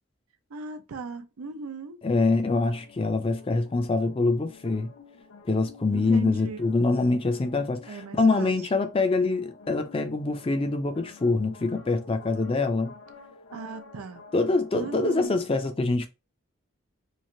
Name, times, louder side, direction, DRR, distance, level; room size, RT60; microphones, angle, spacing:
voice 1, 0.5-2.0 5.9-6.6 7.9-8.5 13.5-14.2 14.7-15.5, right 4 dB, 90° right, 0.5 m, -38 dB
voice 2, 2.0-4.9 5.5-12.9 14.3-16.1, left 3 dB, 25° left, 0.4 m, -25 dB
sound 1, 2.3-15.3, left 4 dB, 80° left, 0.6 m, -50 dB
3.1 x 2.5 x 2.6 m
head